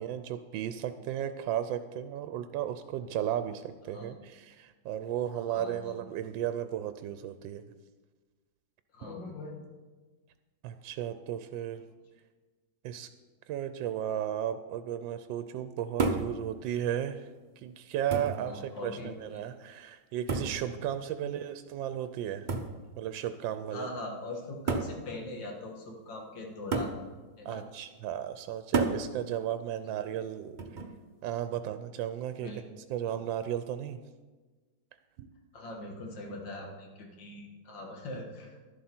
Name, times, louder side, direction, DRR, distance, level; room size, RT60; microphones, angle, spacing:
voice 1, 0.0-7.6 9.0-9.1 10.6-11.8 12.8-13.1 13.5-17.3 17.6-22.5 23.0-23.9 27.4-30.6 31.2-32.5 32.9-34.0 35.2-35.3, right 10 dB, 80° right, 10 dB, 1.3 m, -34 dB
voice 2, 5.5-6.0 8.9-9.6 18.4-19.4 21.2-21.3 23.7-27.0 27.4-27.6 32.4-32.6 33.1-33.2 35.5-38.6, left 2 dB, 70° left, 1 dB, 2.4 m, -41 dB
sound 1, 16.0-16.4 17.4-17.5 18.1-18.5 20.3-20.6 22.5-22.8 23.8-23.9 24.7-25.0 26.7-27.0 28.7-29.0 30.6-31.0, right 4 dB, 45° right, 0.6 m, -30 dB
12.0 x 11.0 x 4.4 m, 1.3 s
omnidirectional pair, 2.1 m